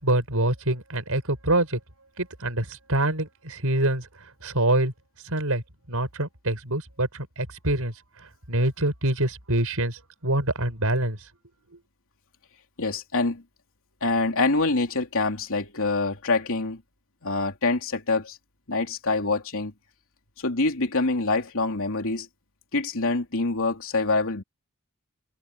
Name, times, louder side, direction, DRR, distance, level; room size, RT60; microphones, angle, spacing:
voice 1, 0.0-1.8 2.2-4.1 4.4-4.9 5.3-5.6 5.9-7.9 8.5-11.2, right 1 dB, 70° right, 7.0 m, -25 dB
voice 2, 12.8-13.4 14.0-16.8 17.2-18.4 18.7-19.7 20.4-22.3 22.7-24.4, left 3 dB, 65° left, 3.3 m, -25 dB
head